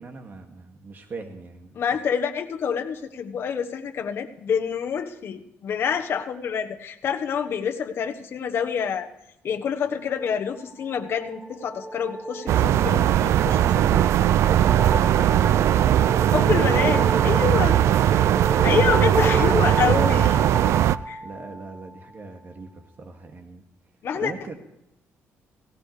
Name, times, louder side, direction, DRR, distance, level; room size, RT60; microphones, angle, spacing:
voice 1, 0.0-1.8 21.2-23.6 24.2-24.6, right 4 dB, 45° right, 4 dB, 2.3 m, -39 dB
voice 2, 1.7-9.1 9.4-14.0 16.3-17.7 18.6-20.4 21.1-21.2 24.0-24.3, left 7 dB, 60° left, 5 dB, 1.3 m, -27 dB
sound 1, 10.6-22.0, right 1 dB, 10° right, 1.2 m, -32 dB
sound 2, 12.5-21.0, right 11 dB, 75° right, 0.4 m, -19 dB
18.0 x 17.5 x 3.4 m, 0.85 s
cardioid pair, 110°, 5 cm